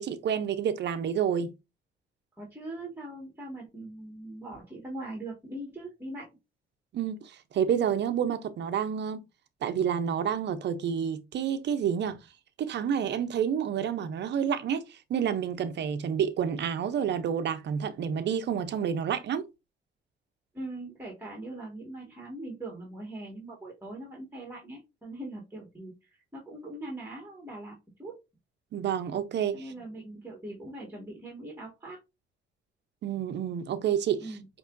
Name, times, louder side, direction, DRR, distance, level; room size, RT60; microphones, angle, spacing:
voice 1, 0.0-1.5 6.9-9.2 9.6-12.2 12.6-19.4 28.7-29.7 33.0-34.3, right 8 dB, 60° right, 0.6 m, -29 dB
voice 2, 2.4-6.3 20.5-28.1 29.5-32.0 34.2-34.4, right 1 dB, 10° right, 1.6 m, -41 dB
5.3 x 3.0 x 2.5 m
cardioid pair, 90°, 20 cm